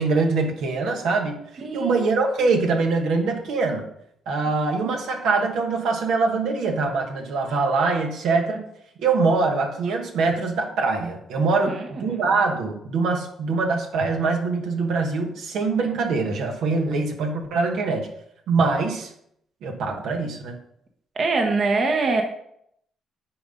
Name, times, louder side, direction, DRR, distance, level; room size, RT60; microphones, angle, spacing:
voice 1, 0.0-1.4 1.7-3.9 4.3-8.6 9.0-18.1 18.5-19.1 19.6-20.6, right 4 dB, 80° right, 3 dB, 1.3 m, -23 dB
voice 2, 1.6-2.1 4.8-5.0 11.6-12.2 16.9-17.0 21.1-22.2, right 3 dB, 50° right, 4 dB, 1.1 m, -24 dB
10.0 x 4.1 x 5.2 m, 0.71 s
cardioid pair, 90°, 0 cm